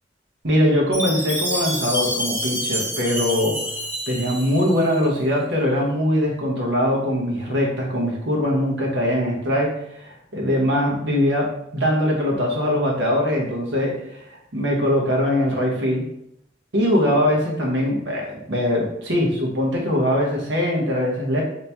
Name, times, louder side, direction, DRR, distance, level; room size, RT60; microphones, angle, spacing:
voice 1, 0.4-3.6 4.1-14.2 14.5-16.1 16.7-21.4, left 1 dB, 80° right, -2 dB, 1.0 m, -22 dB
Chime, 0.9-5.1, equal, 15° right, 0.7 m, -28 dB
2.9 x 2.9 x 3.4 m, 0.78 s
head